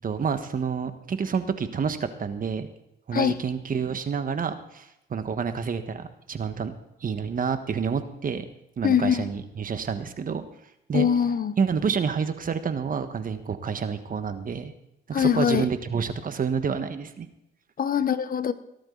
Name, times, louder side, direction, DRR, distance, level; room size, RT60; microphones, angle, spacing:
voice 1, 0.0-2.7 3.1-6.7 7.0-8.4 8.8-10.4 10.9-11.1 11.6-14.7 15.1-17.3, right 6 dB, 45° right, 9 dB, 1.5 m, -28 dB
voice 2, 8.8-9.3 10.9-11.5 15.1-15.7 17.8-18.5, left 8 dB, 45° left, 13 dB, 0.9 m, -23 dB
18.5 x 12.0 x 4.0 m, 0.84 s
cardioid pair, 90°, 20 cm